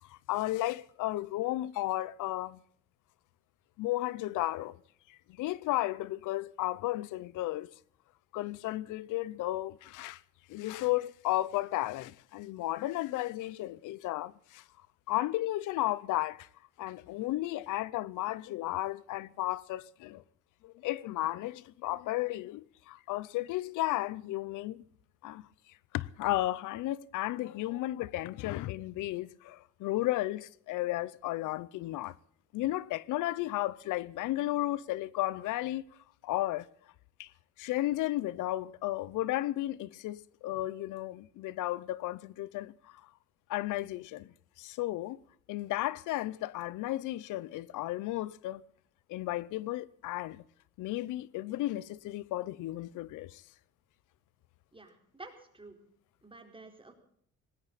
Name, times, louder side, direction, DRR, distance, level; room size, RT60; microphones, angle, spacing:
voice 1, 0.0-2.6 3.8-4.8 5.1-7.7 8.3-10.2 10.5-14.6 15.1-16.5 16.8-20.2 20.6-24.8 25.2-25.4 25.9-32.2 32.5-35.8 36.2-36.7 37.2-37.3 37.6-43.0 43.5-45.2 45.5-48.6 49.1-50.4 50.8-53.4, left 16 dB, 90° left, 0.6 m, -34 dB
voice 2, 54.7-55.8 56.2-56.9, right 2 dB, 15° right, 4.1 m, -50 dB
18.5 x 17.5 x 4.1 m
cardioid pair, 90°, 30 cm